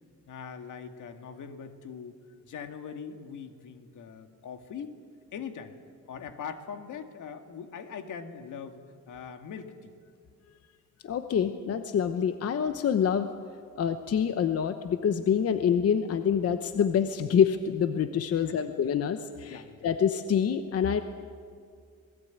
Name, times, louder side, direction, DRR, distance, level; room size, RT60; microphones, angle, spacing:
voice 1, 0.3-2.2 2.5-4.9 5.3-5.8 6.1-9.9 18.3-18.7 19.5-19.8, left 6 dB, 80° left, 7 dB, 2.0 m, -41 dB
voice 2, 11.0-13.3 13.8-21.0, left 8 dB, 50° left, 9 dB, 1.0 m, -26 dB
26.5 x 19.5 x 9.2 m, 2.2 s
wide cardioid pair, 160°, 30 cm